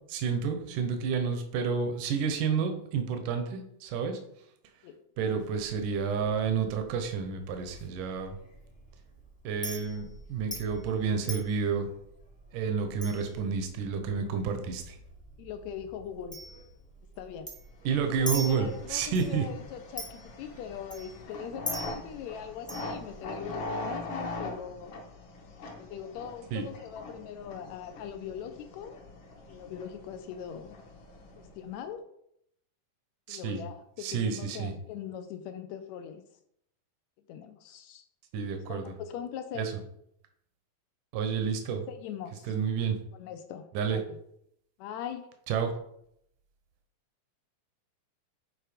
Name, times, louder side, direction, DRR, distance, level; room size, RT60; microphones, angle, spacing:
voice 1, 0.1-4.2 5.2-8.4 9.4-11.9 12.5-15.0 17.9-19.5 26.5-26.6 33.3-33.6 34.0-34.7 38.3-38.8 39.6-39.7 41.1-41.9 42.5-43.0 43.7-44.0 45.5-45.7, right 6 dB, 80° right, 6 dB, 2.3 m, -30 dB
Chink clink, 5.4-23.6, equal, 10° left, 0.4 m, -44 dB
voice 2, 15.4-16.4 17.2-17.5 18.0-25.0 25.7-29.0 29.5-30.8 31.4-32.0 33.3-36.2 37.3-38.0 38.7-39.7 41.9-42.5 43.1-44.2 44.8-45.2, left 8 dB, 80° left, 8 dB, 1.7 m, -41 dB
sound 1, 17.9-31.7, left 2 dB, 55° left, 1.6 m, -42 dB
7.9 x 4.4 x 5.0 m, 0.73 s
omnidirectional pair, 3.6 m